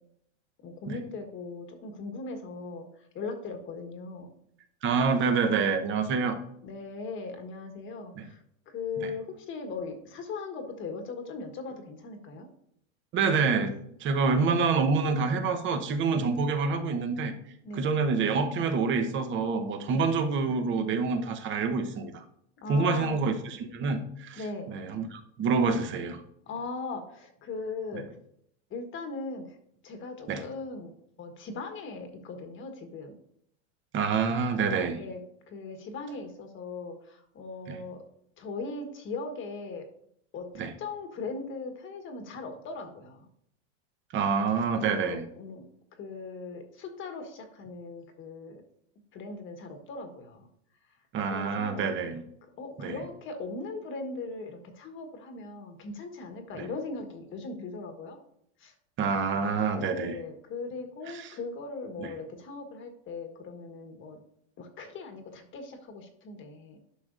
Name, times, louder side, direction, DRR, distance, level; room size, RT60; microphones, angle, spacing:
voice 1, 0.6-2.9 3.1-4.3 6.6-8.4 8.7-12.5 16.1-16.3 17.6-17.9 19.9-20.1 22.6-23.2 24.4-24.7 26.5-28.0 28.7-29.5 29.8-33.1 34.9-35.2 35.5-38.0 38.4-39.8 40.3-40.5 40.8-43.3 44.8-45.6 45.9-48.6 49.1-50.5 51.2-51.9 52.6-58.2 58.6-58.7 59.7-64.2 64.6-66.8, left 3 dB, 30° left, 5 dB, 1.4 m, -39 dB
voice 2, 4.8-6.4 8.1-8.3 9.0-9.1 13.1-13.7 14.0-17.3 17.7-22.2 22.7-23.3 23.6-26.2 27.9-28.0 30.3-30.4 33.9-35.0 37.7-37.8 40.6-40.7 44.1-45.3 51.1-52.2 52.8-53.0 56.5-56.6 59.0-60.1 61.1-61.3 62.0-62.1, right 4 dB, 30° right, 6 dB, 1.0 m, -27 dB
11.5 x 6.0 x 2.6 m, 0.71 s
supercardioid pair, 130°, 37 cm